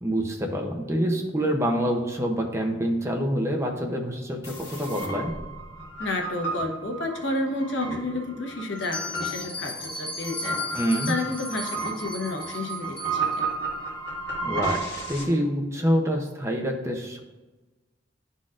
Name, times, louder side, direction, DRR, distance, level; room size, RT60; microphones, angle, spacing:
voice 1, 0.0-5.3 10.7-11.1 14.4-14.8 15.1-17.2, equal, 15° right, 1 dB, 0.7 m, -26 dB
sound 1, 4.4-15.2, right 3 dB, 60° left, 1.8 m, -33 dB
voice 2, 6.0-10.8 11.1-13.5, left 2 dB, 90° left, 1 dB, 1.0 m, -31 dB
Bell, 8.8-13.4, left 1 dB, 25° left, 0.9 m, -37 dB
11.0 x 4.0 x 2.5 m, 1.2 s
head